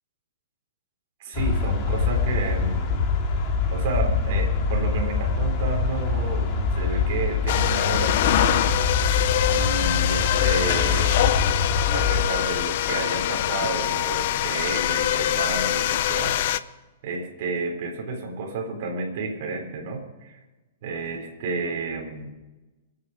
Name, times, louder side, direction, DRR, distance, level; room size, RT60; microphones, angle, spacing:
voice 1, 1.2-3.1 3.7-8.6 9.5-11.5 11.9-16.4 17.0-20.4 20.8-22.3, right 3 dB, 45° right, 2 dB, 3.9 m, -31 dB
sound 1, 1.3-12.3, left 4 dB, 25° left, 2.0 m, -24 dB
sound 2, 7.5-16.6, left 12 dB, 45° left, 0.6 m, -24 dB
25.0 x 8.7 x 5.1 m, 1.1 s
hypercardioid pair, 170°, 0 cm